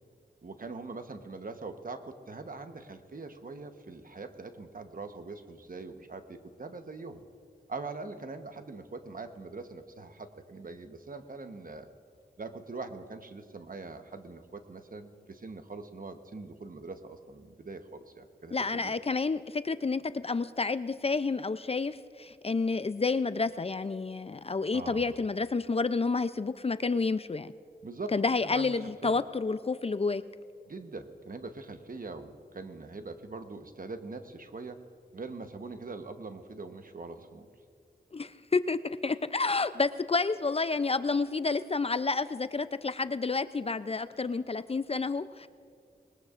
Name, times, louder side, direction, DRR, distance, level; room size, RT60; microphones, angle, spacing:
voice 1, 0.4-7.2 7.7-11.9 12.4-18.9 24.7-25.1 27.8-28.1 28.4-29.2 30.7-34.8 35.1-37.5, right 3 dB, 50° right, 7 dB, 1.1 m, -42 dB
voice 2, 18.5-27.5 28.1-30.2 38.1-45.5, left 4 dB, 35° left, 13 dB, 0.4 m, -30 dB
21.0 x 19.5 x 2.5 m, 2.3 s
cardioid pair, 50°, 18 cm